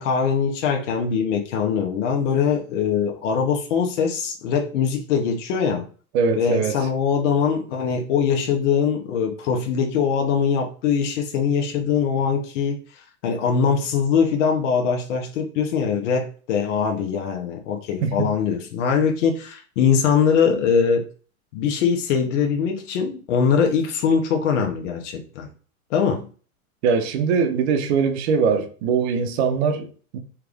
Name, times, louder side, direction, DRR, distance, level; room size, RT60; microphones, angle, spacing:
voice 1, 0.0-5.9 6.4-12.8 13.2-21.0 21.5-25.5 25.9-26.3, left 6 dB, 55° left, 0.9 m, -22 dB
voice 2, 6.1-6.8 18.0-18.3 26.8-30.2, right 5 dB, 50° right, 0.8 m, -22 dB
3.4 x 2.4 x 3.4 m
hypercardioid pair, 130°, 42 cm